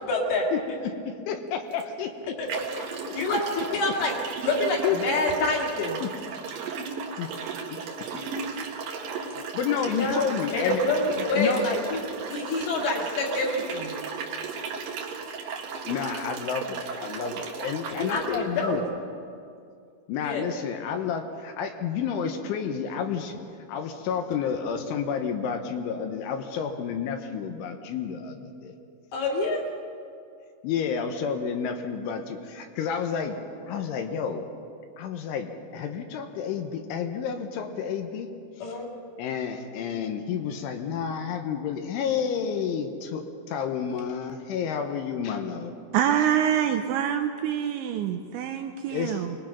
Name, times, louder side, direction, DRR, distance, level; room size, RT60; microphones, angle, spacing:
voice 1, 0.1-0.5 2.4-2.5 3.1-4.1 4.4-6.0 9.9-10.3 10.5-12.0 12.3-13.9 17.9-18.8 20.2-20.5 29.1-29.6 38.6-38.9, left 2 dB, 55° left, -1 dB, 4.0 m, -27 dB
voice 2, 0.8-3.6 4.8-5.0 6.0-6.1 7.2-7.3 8.1-8.2 9.2-10.8 11.3-11.6 15.9-18.9 20.1-23.3 23.7-28.8 30.6-33.4 33.6-34.5 35.0-38.3 39.2-45.7 48.9-49.3, left 7 dB, 75° left, 5 dB, 3.4 m, -30 dB
sound 1, 1.7-1.8 2.5-18.4, right 5 dB, 60° right, 2.5 m, -35 dB
voice 3, 45.9-49.4, right 9 dB, 80° right, 6 dB, 2.8 m, -26 dB
25.0 x 20.0 x 5.9 m, 2.4 s
omnidirectional pair, 5.8 m